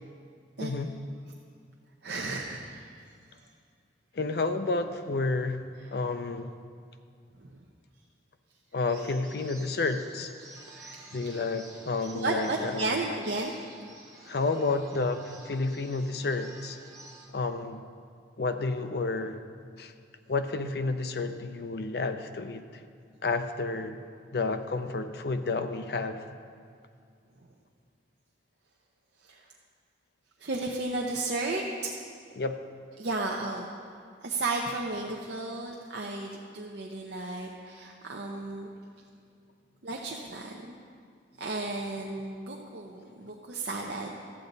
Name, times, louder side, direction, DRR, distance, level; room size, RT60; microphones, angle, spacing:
voice 1, 0.6-0.9 4.1-5.6 5.9-6.5 8.7-10.3 11.1-13.0 14.3-16.8 17.3-17.8 18.4-19.4 19.8-19.9 20.3-22.8 23.2-24.0 24.3-26.2 32.4-32.6, left 3 dB, 60° left, 8 dB, 0.5 m, -30 dB
voice 2, 2.0-2.9 3.4-3.5 5.8-5.9 7.4-7.6 8.9-9.1 10.4-11.4 12.1-13.5 29.2-29.5 30.4-31.9 33.0-33.7 34.2-38.7 39.8-40.8 41.4-44.2, right 2 dB, 65° right, -1 dB, 0.7 m, -34 dB
sound 1, 9.2-17.3, right 2 dB, 20° right, 1.0 m, -51 dB
13.0 x 8.3 x 4.0 m, 2.2 s
head